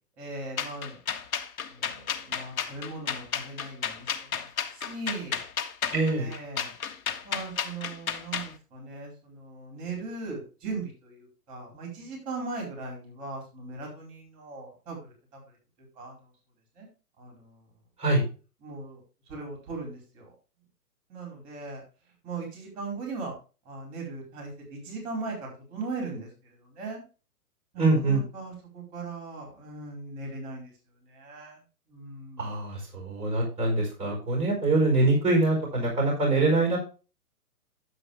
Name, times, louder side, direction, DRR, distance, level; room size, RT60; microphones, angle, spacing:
voice 1, 0.2-1.0 1.7-4.4 4.7-5.5 6.2-6.7 7.2-15.6 15.9-16.3 16.8-16.9 17.2-17.7 18.6-20.3 21.1-21.8 22.2-23.4 23.6-27.0 27.7-30.7 31.0-31.6 31.9-32.5, right 3 dB, 35° right, 0 dB, 4.8 m, -39 dB
sound 1, 0.6-8.5, left 7 dB, 60° left, 1.4 m, -32 dB
voice 2, 5.9-6.3 18.0-18.2 27.8-28.2 32.4-36.8, right 2 dB, 10° right, -1 dB, 4.7 m, -24 dB
9.8 x 8.1 x 3.4 m, 0.33 s
hypercardioid pair, 140°, 46 cm